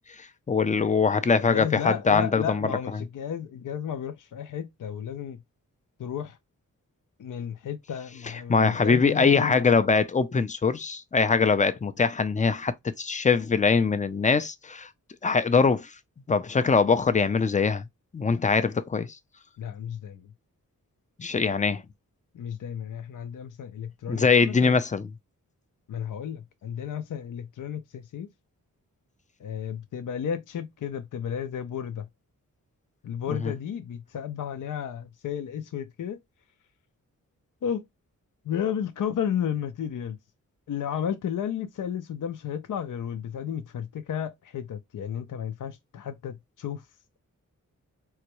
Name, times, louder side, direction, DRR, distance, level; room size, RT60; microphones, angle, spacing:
voice 1, 0.2-2.7 8.5-14.9 15.2-15.9 16.3-17.8 18.1-19.1 21.2-21.8 24.1-25.1 33.3-33.5, left 5 dB, 25° left, 0.4 m, -23 dB
voice 2, 1.5-5.4 6.0-6.4 7.2-9.7 19.6-20.3 22.3-24.8 25.9-28.3 29.4-32.1 33.0-36.2 37.6-37.8 38.4-40.2 40.7-46.8, left 8 dB, 70° left, 0.5 m, -33 dB
3.9 x 2.2 x 3.0 m
cardioid pair, 70°, 33 cm